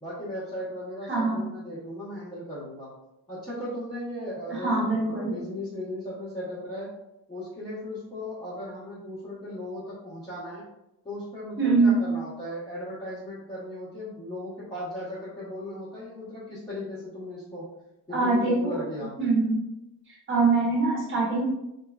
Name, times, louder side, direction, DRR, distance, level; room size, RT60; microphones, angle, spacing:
voice 1, 0.0-2.9 3.3-6.9 7.3-10.6 11.0-17.7 18.1-19.1, left 1 dB, 10° left, -11 dB, 0.7 m, -37 dB
voice 2, 1.1-1.4 4.5-5.3 11.6-12.0 18.1-18.8 19.2-19.6 20.1-21.4, right 3 dB, 30° right, -5 dB, 0.9 m, -23 dB
3.0 x 2.3 x 2.3 m, 0.89 s
cardioid pair, 160°, 41 cm